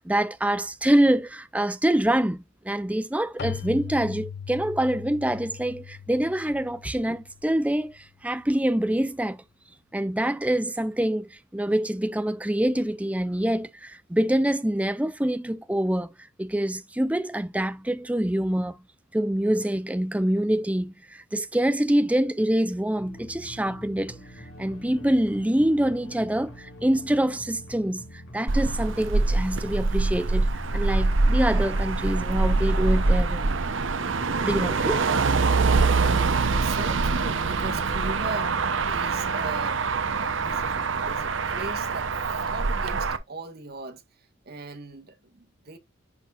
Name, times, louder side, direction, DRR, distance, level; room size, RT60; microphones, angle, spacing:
voice 1, 0.0-9.4 9.9-16.1 16.4-18.8 19.1-33.4 34.4-35.0, right 1 dB, 5° right, 0.5 m, -25 dB
Keyboard (musical), 3.4-7.9, left 6 dB, 55° left, 0.5 m, -39 dB
sound 1, 23.0-39.5, equal, 70° left, 2.0 m, -44 dB
Motor vehicle (road), 28.5-43.2, right 3 dB, 70° right, 0.8 m, -24 dB
voice 2, 36.6-44.0 44.4-45.8, right 3 dB, 50° right, 1.5 m, -39 dB
10.5 x 4.6 x 2.4 m
head